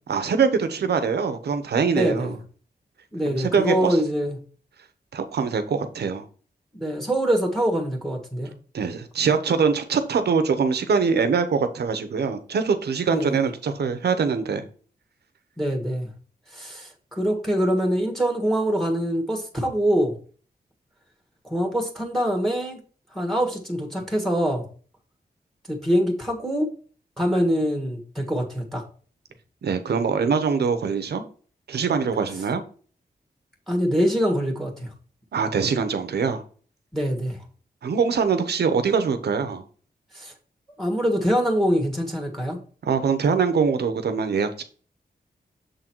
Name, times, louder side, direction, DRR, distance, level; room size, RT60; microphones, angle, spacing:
voice 1, 0.1-2.3 3.3-4.0 5.1-6.2 8.7-14.7 29.6-31.2 31.7-32.6 35.3-36.4 37.8-39.6 42.8-44.6, right 5 dB, 90° right, 0.8 m, -23 dB
voice 2, 1.9-2.3 3.1-4.4 6.7-8.5 13.1-13.5 15.6-16.1 16.5-20.2 21.4-22.8 23.1-24.7 25.7-26.7 27.2-28.8 33.7-34.9 36.9-37.4 40.1-40.3 40.8-42.6, equal, ahead, 1.5 m, -24 dB
6.9 x 3.9 x 4.5 m
wide cardioid pair, 135°, 16 cm